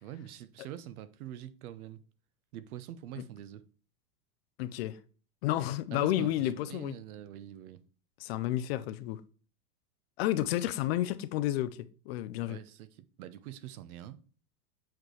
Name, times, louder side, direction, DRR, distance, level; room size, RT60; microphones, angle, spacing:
voice 1, 0.0-2.0 2.5-3.6 5.9-7.8 12.5-14.2, right 11 dB, 65° right, 0.9 m, -45 dB
voice 2, 4.6-5.0 5.4-6.9 8.2-9.2 10.2-11.7 12.1-12.6, left 13 dB, 40° left, 0.5 m, -31 dB
7.6 x 4.4 x 3.2 m
supercardioid pair, 140°, 48 cm